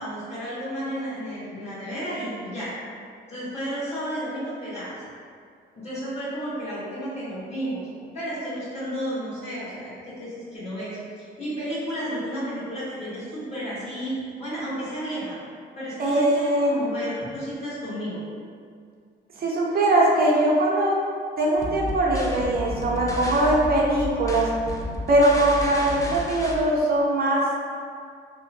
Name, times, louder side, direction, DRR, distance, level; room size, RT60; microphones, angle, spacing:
voice 1, 0.0-2.7 3.3-4.9 5.7-7.8 8.1-15.4 15.7-18.2, equal, 30° left, -11 dB, 1.4 m, -32 dB
voice 2, 16.0-16.8 19.4-21.0 21.4-24.5 25.1-27.4, right 1 dB, 50° right, -3 dB, 0.6 m, -21 dB
sound 1, 21.6-26.6, left 2 dB, 15° left, 0.3 m, -32 dB
2.8 x 2.1 x 2.6 m, 2.2 s
cardioid pair, 90°, 20 cm